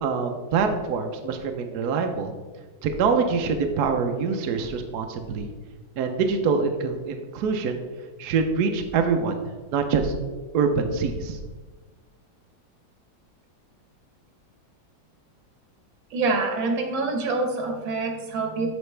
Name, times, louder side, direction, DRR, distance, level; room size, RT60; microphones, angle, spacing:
voice 1, 0.0-2.3 2.8-5.5 6.0-7.8 8.2-9.4 9.7-11.4, right 5 dB, 65° right, 5 dB, 1.1 m, -25 dB
voice 2, 16.1-18.7, right 3 dB, 85° right, 4 dB, 1.7 m, -26 dB
7.9 x 5.1 x 3.3 m, 1.3 s
omnidirectional pair, 2.1 m